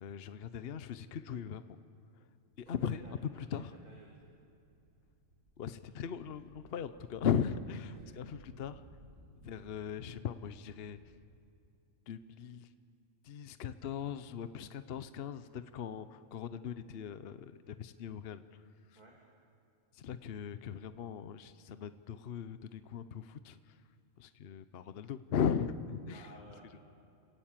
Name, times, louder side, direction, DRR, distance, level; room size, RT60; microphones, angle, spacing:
voice 1, 0.0-1.8 2.6-3.0 3.3-3.7 5.6-8.8 9.4-11.0 12.1-12.7 13.2-18.4 18.9-19.0 19.9-23.7 24.2-26.3, left 7 dB, 55° left, 12 dB, 0.9 m, -38 dB
voice 2, 2.6-4.2 7.9-8.1 19.0-19.2 26.1-26.7, right 1 dB, 30° right, -2 dB, 3.0 m, -56 dB
sound 1, 4.2-11.3, right 2 dB, 85° right, 6.9 m, -61 dB
29.5 x 18.0 x 7.5 m, 2.6 s
omnidirectional pair, 1.4 m